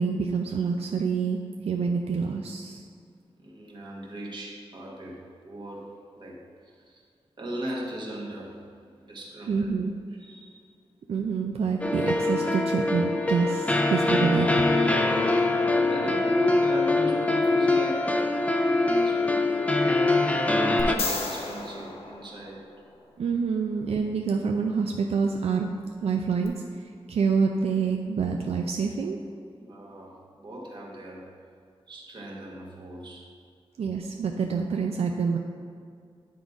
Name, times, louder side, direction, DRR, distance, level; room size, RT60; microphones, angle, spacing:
voice 1, 0.0-1.4 1.6-2.8 9.5-9.9 11.1-14.5 23.2-25.7 26.0-26.5 27.1-29.2 33.8-35.4, right 5 dB, 85° right, 2 dB, 0.4 m, -27 dB
voice 2, 3.4-6.4 6.6-7.0 7.4-8.6 9.0-9.7 10.1-10.6 15.9-18.5 18.8-19.8 20.4-22.6 23.4-23.5 29.6-31.3 31.9-33.3, equal, 50° right, -3 dB, 1.4 m, -37 dB
sound 1, 11.8-21.0, left 2 dB, 15° left, 0.4 m, -23 dB
sound 2, 20.8-23.0 26.4-26.5, left 3 dB, 75° left, 0.9 m, -34 dB
9.2 x 3.9 x 4.8 m, 2.2 s
wide cardioid pair, 155°, 10 cm